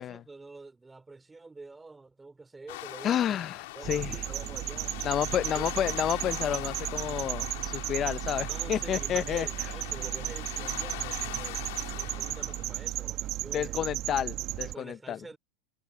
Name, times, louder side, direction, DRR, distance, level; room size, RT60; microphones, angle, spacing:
voice 1, 0.0-3.4 3.7-5.0 5.5-5.6 8.5-13.8 14.6-15.4, right 3 dB, 10° right, 3.5 m, -47 dB
sound 1, 2.7-13.2, left 20 dB, 70° left, 2.6 m, -42 dB
voice 2, 3.0-4.2 5.0-9.5 13.5-15.2, left 10 dB, 35° left, 0.5 m, -30 dB
sound 2, 3.8-14.7, right 15 dB, 50° right, 1.2 m, -35 dB
hypercardioid pair, 105°, 0 cm